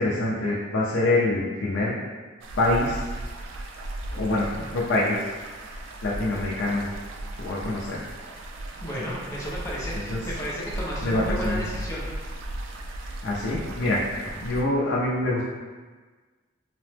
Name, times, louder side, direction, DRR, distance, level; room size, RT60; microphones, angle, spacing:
voice 1, 0.0-1.9 2.6-3.1 4.1-5.2 6.0-6.9 7.4-8.0 8.9-9.0 10.1-10.2 11.0-11.6 13.2-15.4, left 2 dB, 75° left, -6 dB, 0.4 m, -25 dB
sound 1, 2.4-14.6, right 1 dB, 80° right, 0.3 m, -36 dB
voice 2, 8.8-12.1, equal, 15° left, -6 dB, 0.4 m, -33 dB
2.9 x 2.0 x 3.2 m, 1.4 s
head